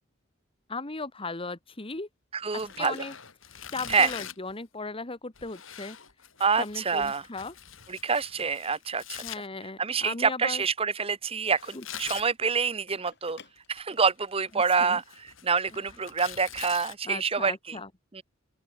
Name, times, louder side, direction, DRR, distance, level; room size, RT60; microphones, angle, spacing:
voice 1, 0.7-2.1 2.8-3.1 3.7-6.0 6.6-7.5 9.2-10.6 11.7-11.8 14.8-15.0 17.0-17.9, left 3 dB, 30° left, 1.5 m, -37 dB
sound 1, 1.5-14.7, left 6 dB, 60° left, 7.7 m, -60 dB
voice 2, 2.3-3.0 3.9-4.1 6.4-7.2 7.9-9.2 9.8-13.4 13.7-15.0 15.4-17.8 18.1-18.2, right 5 dB, 30° right, 1.0 m, -27 dB
Tearing, 2.5-4.5 5.3-9.4 11.5-12.3 13.6-14.1 14.5-16.9, left 9 dB, 85° left, 6.6 m, -43 dB
open air
head